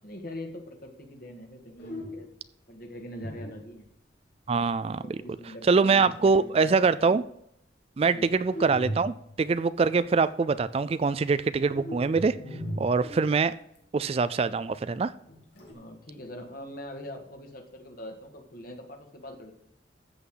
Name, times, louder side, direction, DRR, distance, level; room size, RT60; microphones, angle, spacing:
voice 1, 0.0-2.3 2.7-3.9 5.0-6.8 8.0-8.3 15.7-19.5, left 1 dB, 50° left, 2.0 m, -42 dB
sound 1, 1.8-2.4 3.1-4.0 6.0-6.5 8.4-9.5 11.6-13.8 15.2-15.7, equal, 70° left, 2.9 m, -38 dB
voice 2, 4.5-5.2 5.7-7.2 8.0-12.4 12.8-13.5 13.9-15.1, right 4 dB, 35° right, 0.3 m, -24 dB
14.0 x 8.1 x 3.9 m
head